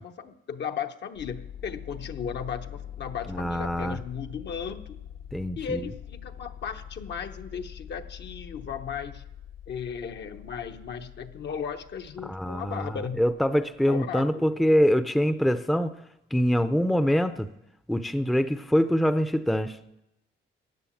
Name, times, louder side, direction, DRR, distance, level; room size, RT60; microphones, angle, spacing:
voice 1, 0.0-5.0 5.6-9.2 9.7-13.2 13.9-14.5, left 7 dB, 60° left, 6 dB, 1.0 m, -36 dB
sound 1, 1.1-13.8, left 9 dB, 85° left, 2.5 m, -44 dB
voice 2, 3.3-4.0 5.3-5.8 12.2-15.9 16.3-17.5 17.9-19.8, equal, ahead, 11 dB, 0.6 m, -24 dB
15.0 x 9.7 x 7.2 m, 0.88 s
cardioid pair, 90°, 20 cm